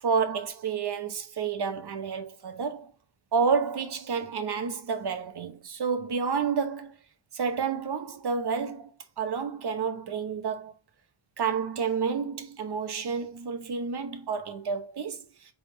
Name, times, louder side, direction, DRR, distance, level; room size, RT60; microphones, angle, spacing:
voice 1, 0.0-2.9 3.3-7.0 7.3-8.9 9.2-10.7 11.4-15.5, right 5 dB, 55° right, 0.9 m, -30 dB
3.9 x 3.5 x 3.8 m
wide cardioid pair, 105°, 48 cm